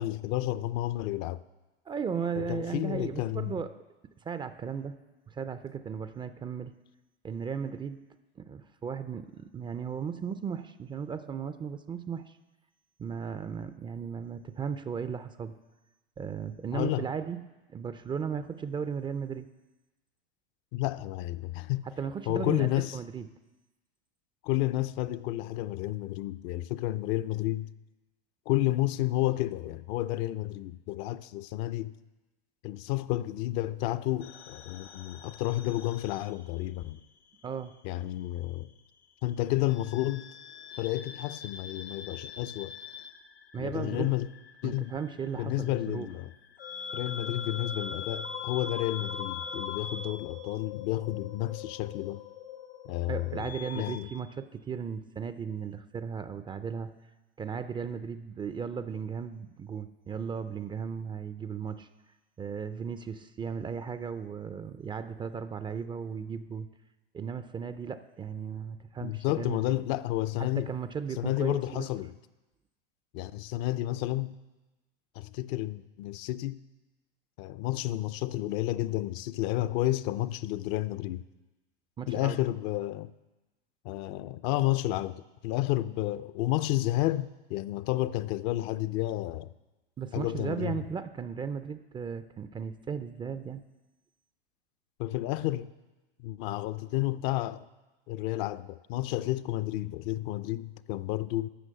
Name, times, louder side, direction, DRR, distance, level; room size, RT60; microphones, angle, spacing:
voice 1, 0.0-1.4 2.4-3.6 16.7-17.1 20.7-21.9 22.3-23.0 24.4-27.7 28.5-31.9 32.6-37.0 37.8-38.7 39.2-40.3 40.8-42.7 43.6-44.3 44.6-44.9 45.4-46.3 46.9-52.2 52.9-54.1 69.0-70.7 71.2-72.1 73.1-74.3 75.1-76.6 77.4-81.2 82.1-83.1 83.8-89.5 90.1-90.8 95.0-95.7 96.2-97.6 98.1-101.5, left 16 dB, 50° left, 0.5 m, -31 dB
voice 2, 1.9-3.8 4.2-5.0 5.3-6.7 7.2-8.1 8.4-12.4 13.0-15.6 16.2-17.4 17.7-19.5 21.8-23.3 37.4-37.8 43.5-44.2 44.6-46.1 53.1-56.9 57.4-61.9 62.4-66.7 67.1-69.8 70.4-71.9 82.0-82.4 90.0-93.6, right 6 dB, 15° right, 0.4 m, -36 dB
sound 1, 34.2-37.0 37.3-38.5 39.7-54.0, left 6 dB, 85° left, 1.1 m, -42 dB
13.0 x 6.1 x 7.6 m
hypercardioid pair, 100°, 30 cm